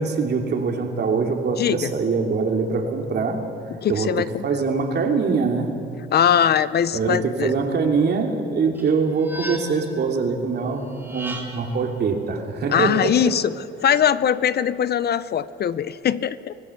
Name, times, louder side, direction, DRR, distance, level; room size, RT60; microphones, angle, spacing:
voice 1, 0.0-3.4 3.9-5.7 6.9-13.3, right 4 dB, 55° right, 2 dB, 2.9 m, -23 dB
voice 2, 1.6-1.9 3.7-4.4 6.1-7.5 12.7-13.5 13.8-16.5, left 9 dB, 55° left, 16 dB, 0.7 m, -21 dB
sound 1, 8.7-10.0 10.9-11.8, right 1 dB, 10° right, 4.4 m, -36 dB
25.0 x 16.5 x 7.2 m, 2.5 s
cardioid pair, 90°, 20 cm